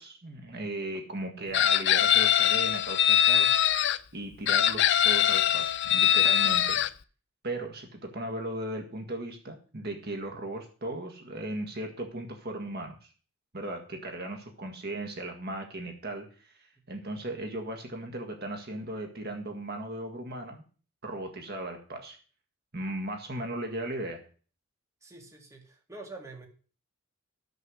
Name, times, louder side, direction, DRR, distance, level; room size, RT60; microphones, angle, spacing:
voice 1, 0.0-6.8 7.4-13.1 13.5-20.6 21.0-22.2 22.7-24.3, right 1 dB, 45° right, 4 dB, 1.9 m, -37 dB
Chicken rooster, 1.5-4.0 4.5-6.9, left 10 dB, 55° left, 0.5 m, -23 dB
voice 2, 25.0-26.5, right 2 dB, 15° right, 1 dB, 2.1 m, -46 dB
13.0 x 6.7 x 6.3 m, 0.39 s
head